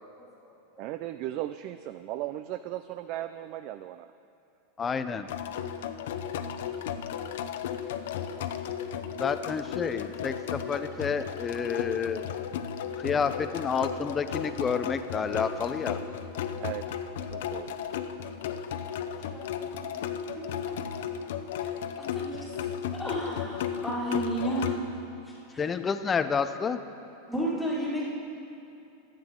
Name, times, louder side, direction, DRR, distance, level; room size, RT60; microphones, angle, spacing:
voice 1, 0.8-4.1 16.6-16.8 17.3-17.8, right 14 dB, 50° right, 12 dB, 0.4 m, -36 dB
voice 2, 4.8-5.3 9.1-12.2 13.0-16.0 25.6-26.8, left 6 dB, 20° left, 10 dB, 0.5 m, -29 dB
sound 1, 5.3-24.8, left 8 dB, 75° left, 0.7 m, -34 dB
voice 3, 18.5-20.1 20.4-20.8 21.6-21.7 22.0-24.8 25.2-25.6 27.3-28.0, right 1 dB, 5° left, -7 dB, 2.5 m, -34 dB
23.5 x 8.9 x 3.7 m, 2.8 s
supercardioid pair, 130°, 0 cm